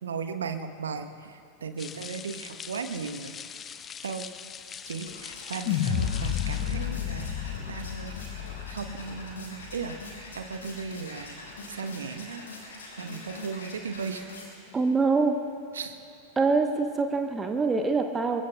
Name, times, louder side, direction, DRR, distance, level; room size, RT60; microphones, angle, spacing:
voice 1, 0.0-3.4 4.0-4.3 4.9-7.4 7.7-8.1 8.7-10.0 10.3-11.4 11.7-12.4 13.0-14.2 15.7-16.0, right 5 dB, 70° right, 9 dB, 1.0 m, -36 dB
sound 1, 1.8-6.9, left 7 dB, 25° left, 0.6 m, -42 dB
sound 2, 4.7-14.8, left 2 dB, 65° left, 4.3 m, -44 dB
sound 3, 5.7-10.0, left 9 dB, 45° left, 1.1 m, -31 dB
voice 2, 14.7-15.4 16.4-18.4, right 4 dB, 15° right, 5 dB, 1.0 m, -24 dB
26.0 x 22.5 x 2.3 m, 2.6 s
figure-of-eight pair, 90°, 0 cm